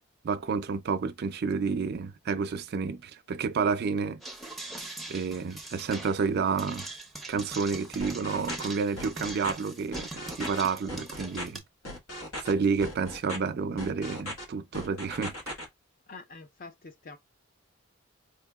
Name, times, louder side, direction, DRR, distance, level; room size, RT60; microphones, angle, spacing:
voice 1, 0.2-4.2 5.1-6.9 7.3-11.6 12.4-15.3, right 5 dB, 50° right, 0.4 m, -30 dB
sound 1, 4.2-11.6, right 2 dB, ahead, 0.6 m, -42 dB
sound 2, 8.0-8.7 9.0-9.5 9.9-10.6 10.9-11.4 11.9-12.5 12.8-13.4 13.8-14.5 14.7-15.7, left 1 dB, 80° left, 1.2 m, -38 dB
voice 2, 16.1-17.2, left 3 dB, 40° left, 0.6 m, -46 dB
4.2 x 2.8 x 2.3 m
head